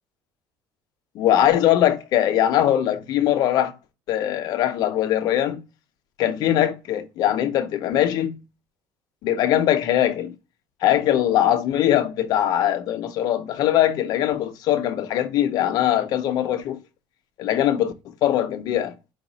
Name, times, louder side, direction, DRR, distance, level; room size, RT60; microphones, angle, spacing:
voice 1, 1.1-3.7 4.1-5.6 6.2-8.4 9.2-10.3 10.8-16.8 17.4-17.9 18.2-18.9, left 11 dB, 60° left, 0.7 m, -21 dB
4.8 x 2.3 x 4.1 m
cardioid pair, 135°, 8 cm